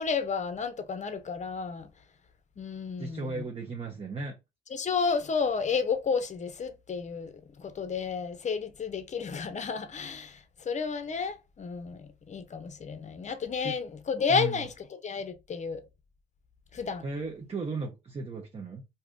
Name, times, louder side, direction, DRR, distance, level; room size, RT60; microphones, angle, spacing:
voice 1, 0.0-1.9 2.6-3.4 4.7-15.8 16.7-17.0, left 5 dB, 35° left, 0.7 m, -32 dB
voice 2, 3.0-4.3 13.6-13.8 14.3-14.7 17.0-18.8, right 3 dB, 30° right, 0.7 m, -35 dB
2.7 x 2.4 x 3.5 m
cardioid pair, 90°, 20 cm